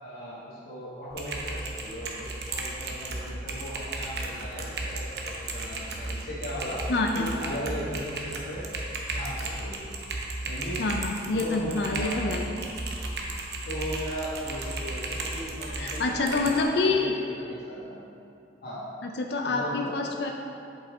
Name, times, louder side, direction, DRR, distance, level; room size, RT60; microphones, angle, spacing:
voice 1, 0.0-6.9 7.1-8.7 9.1-9.9 10.4-10.8 11.3-12.6 13.7-18.0 18.6-18.8 19.4-19.9, equal, 55° left, -10 dB, 1.6 m, -37 dB
Typing, 1.1-16.6, right 2 dB, 70° right, 0.8 m, -35 dB
voice 2, 6.9-7.3 10.8-12.5 15.8-17.1 19.0-20.3, left 3 dB, 75° left, 2 dB, 0.5 m, -27 dB
7.2 x 5.5 x 3.6 m, 2.6 s
head